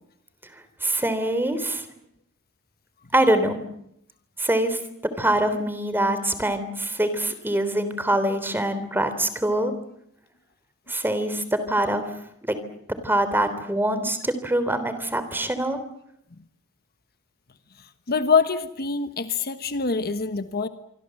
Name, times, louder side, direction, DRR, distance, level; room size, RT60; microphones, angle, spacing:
voice 1, 0.4-1.8 3.1-3.6 4.4-4.8 5.2-9.7 10.9-12.1 12.4-12.6 13.0-15.8, right 1 dB, 10° right, 11 dB, 3.4 m, -24 dB
voice 2, 18.1-20.7, left 5 dB, 45° left, 10 dB, 1.3 m, -24 dB
27.0 x 24.5 x 7.8 m, 0.76 s
head